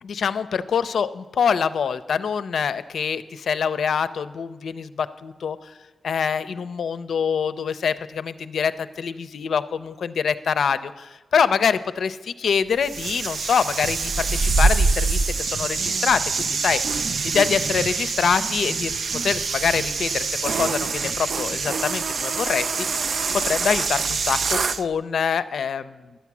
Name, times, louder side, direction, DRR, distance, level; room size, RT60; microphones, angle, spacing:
voice 1, 0.0-5.7 6.0-19.0 19.2-23.1 23.4-26.2, left 6 dB, 75° left, 13 dB, 0.5 m, -25 dB
sound 1, 12.8-24.8, right 4 dB, 65° right, 0.4 m, -25 dB
11.5 x 8.2 x 6.0 m, 1.3 s
cardioid pair, 50°, 0 cm